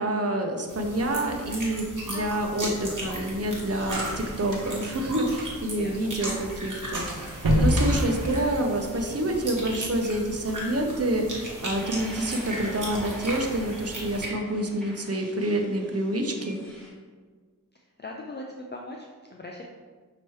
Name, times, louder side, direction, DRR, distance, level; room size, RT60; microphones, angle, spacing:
voice 1, 0.0-16.6, right 1 dB, 45° right, 2 dB, 0.6 m, -28 dB
sound 1, 0.7-14.3, right 1 dB, 60° right, 1.2 m, -37 dB
sound 2, 2.5-5.8 6.1-6.2 6.5-6.6 6.9-9.0, equal, 85° right, 0.8 m, -27 dB
voice 2, 5.8-6.2 17.7-19.6, left 2 dB, 30° left, 0 dB, 0.4 m, -40 dB
sound 3, 7.2-16.9, equal, 5° left, 1.2 m, -46 dB
5.6 x 3.0 x 3.1 m, 1.5 s
wide cardioid pair, 50°, 34 cm